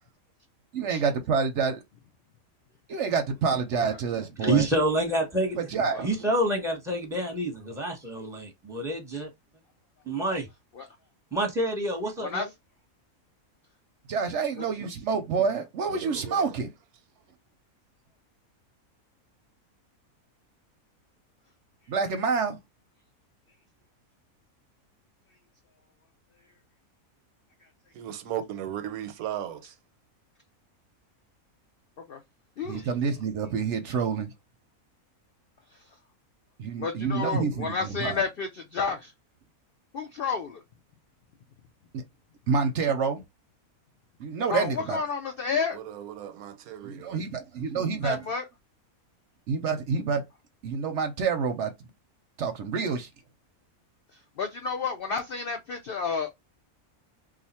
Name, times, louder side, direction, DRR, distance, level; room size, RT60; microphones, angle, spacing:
voice 1, 0.7-1.8 2.9-4.7 5.6-6.1 14.1-16.7 21.9-22.6 32.6-34.3 36.6-38.2 41.9-42.0 42.5-43.2 44.2-45.0 46.8-48.2 49.5-50.2 50.6-51.9 52.4-53.1, right 5 dB, 65° right, 0.8 m, -28 dB
voice 2, 4.4-5.6 6.0-9.3 10.1-10.5 11.3-12.5, right 1 dB, 5° right, 0.8 m, -27 dB
voice 3, 15.9-16.5 27.9-29.7 45.7-47.2, right 11 dB, 85° right, 1.1 m, -36 dB
voice 4, 32.6-32.9 36.8-39.1 39.9-40.6 44.5-45.8 48.0-48.5 54.4-56.3, left 5 dB, 70° left, 0.5 m, -30 dB
2.5 x 2.4 x 4.1 m
omnidirectional pair, 1.5 m